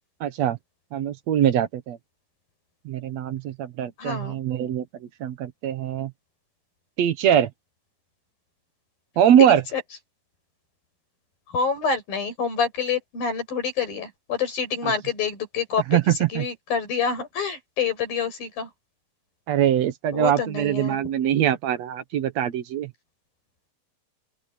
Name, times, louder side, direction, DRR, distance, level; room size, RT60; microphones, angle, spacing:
voice 1, 0.2-0.6 0.9-2.0 2.9-6.1 7.0-7.5 9.2-9.6 14.8-14.9 15.9-16.5 19.5-22.9, right 10 dB, 65° right, 1.8 m, -22 dB
voice 2, 4.0-4.4 9.4-9.8 11.5-16.0 16.3-18.7 20.1-21.0, left 6 dB, 70° left, 8.2 m, -27 dB
open air
omnidirectional pair, 4.2 m